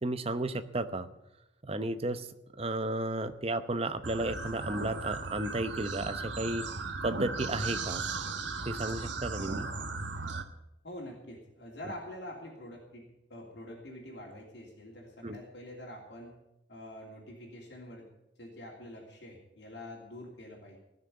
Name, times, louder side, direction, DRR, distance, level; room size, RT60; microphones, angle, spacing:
voice 1, 0.0-1.1 1.6-2.3 2.6-6.7 7.0-8.0 8.6-9.7 15.2-15.4, right 2 dB, 30° right, 10 dB, 0.8 m, -33 dB
sound 1, 4.0-10.4, right 3 dB, 75° right, 1.2 m, -37 dB
voice 2, 10.8-16.3 16.7-18.1 18.4-20.8, left 1 dB, 70° left, -3 dB, 3.1 m, -46 dB
17.0 x 6.6 x 9.7 m, 0.88 s
head